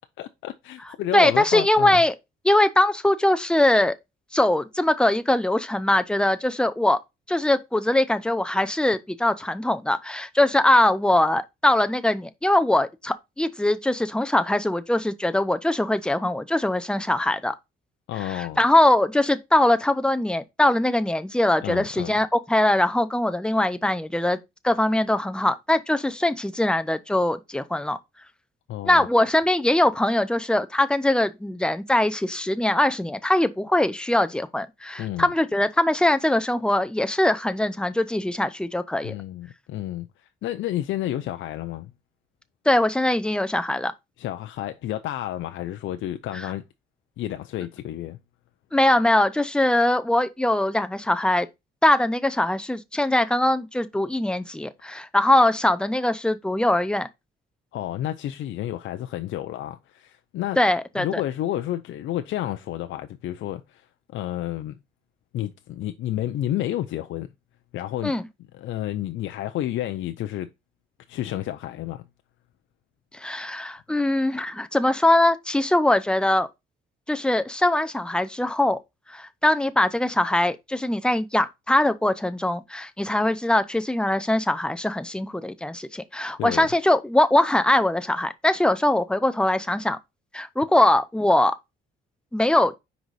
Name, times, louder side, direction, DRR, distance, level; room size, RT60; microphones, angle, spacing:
voice 1, 0.2-2.0 18.1-18.6 21.6-22.1 28.7-29.1 35.0-35.3 39.0-40.1 40.4-41.9 44.2-46.6 47.2-48.2 57.7-60.6 61.0-63.9 64.1-64.8 65.3-67.3 67.7-68.1 68.5-70.5 71.1-72.0 86.4-86.7, left 13 dB, 75° left, 0.5 m, -30 dB
voice 2, 1.1-2.1 2.4-3.9 4.3-7.0 7.3-17.6 18.2-24.4 24.6-28.0 28.8-39.1 42.7-43.9 46.3-46.5 48.7-51.5 51.8-57.1 60.6-61.2 68.0-68.3 73.1-76.5 77.1-78.8 79.1-90.0 90.3-91.6 92.3-92.7, left 1 dB, 5° left, 0.6 m, -22 dB
5.0 x 4.0 x 4.7 m
cardioid pair, 90°, 20 cm